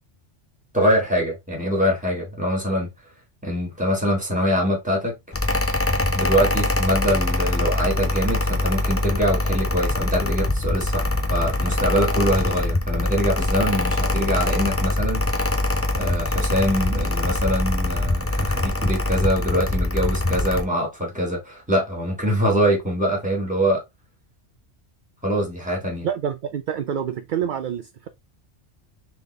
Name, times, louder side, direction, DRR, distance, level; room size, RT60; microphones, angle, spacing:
voice 1, 0.7-2.9 3.4-5.1 6.1-15.6 15.9-23.8 25.2-26.1, equal, 5° right, 1.8 m, -24 dB
Mechanical fan, 5.3-20.6, left 2 dB, 20° left, 0.4 m, -23 dB
voice 2, 26.0-28.1, right 8 dB, 60° right, 0.5 m, -27 dB
3.9 x 3.5 x 3.2 m
omnidirectional pair, 1.2 m